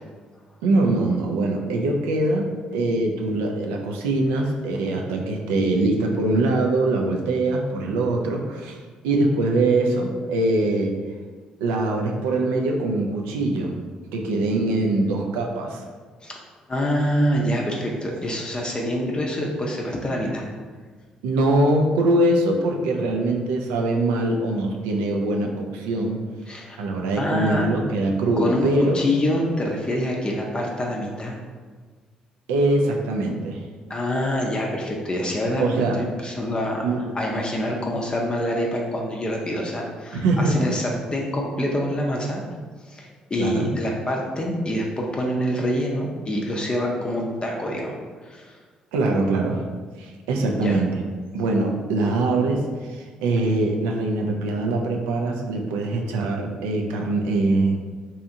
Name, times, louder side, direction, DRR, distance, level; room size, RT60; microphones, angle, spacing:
voice 1, 0.6-8.8 9.0-11.0 11.6-13.7 14.1-15.8 21.2-26.2 26.8-29.0 32.5-33.6 35.6-36.0 36.8-37.1 40.1-40.7 43.4-43.7 48.9-49.6 50.0-50.9 51.3-57.8, right 2 dB, 80° right, 1 dB, 0.3 m, -23 dB
voice 2, 16.7-20.4 26.5-26.8 27.1-27.7 28.4-28.7 28.9-31.4 33.9-36.8 37.1-42.4 42.8-47.9 48.2-48.6 50.5-50.8, equal, 30° left, -1 dB, 0.5 m, -26 dB
2.8 x 2.3 x 2.6 m, 1.5 s
hypercardioid pair, 50°, 3 cm